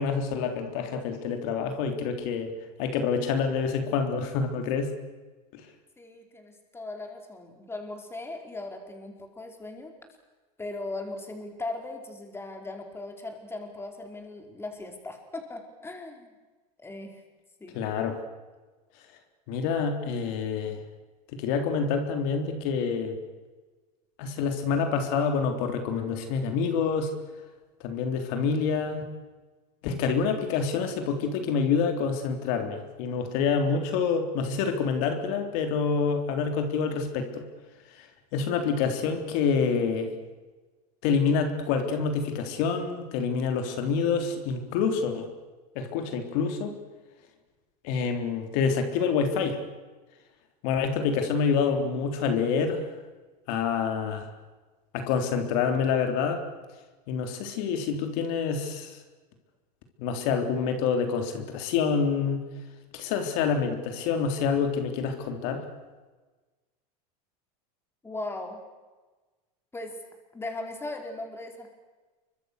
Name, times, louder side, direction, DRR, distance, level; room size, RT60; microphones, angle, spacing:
voice 1, 0.0-2.5 2.8-4.9 5.5-5.7 17.7-18.2 19.5-20.8 21.3-23.2 24.2-27.1 27.8-29.1 29.8-37.4 38.0-38.1 38.3-40.1 41.0-45.3 45.8-46.8 47.8-49.6 50.6-52.9 53.5-54.3 54.9-56.4 57.1-59.0 60.0-62.4 62.9-65.6, left 5 dB, 65° left, 6 dB, 3.7 m, -27 dB
voice 2, 6.0-9.9 10.6-16.3 16.8-17.2 17.6-17.8 68.0-68.6 69.7-70.0 70.3-71.7, left 2 dB, 10° left, 3 dB, 4.8 m, -38 dB
27.5 x 24.0 x 6.7 m, 1.3 s
supercardioid pair, 125°, 20 cm